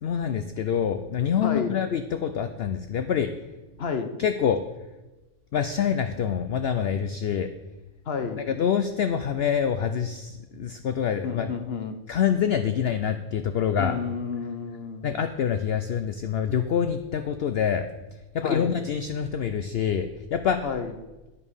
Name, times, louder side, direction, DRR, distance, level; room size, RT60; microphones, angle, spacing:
voice 1, 0.0-3.3 4.2-4.6 5.5-7.5 8.5-11.6 12.1-14.0 15.0-17.8 18.3-20.6, left 8 dB, 65° left, 9 dB, 0.6 m, -26 dB
voice 2, 1.4-1.7 3.8-4.1 8.1-8.4 11.2-12.0 13.8-15.1 18.4-18.8 20.6-20.9, left 5 dB, 50° left, 8 dB, 1.0 m, -30 dB
9.6 x 5.4 x 6.3 m, 1.1 s
omnidirectional pair, 1.5 m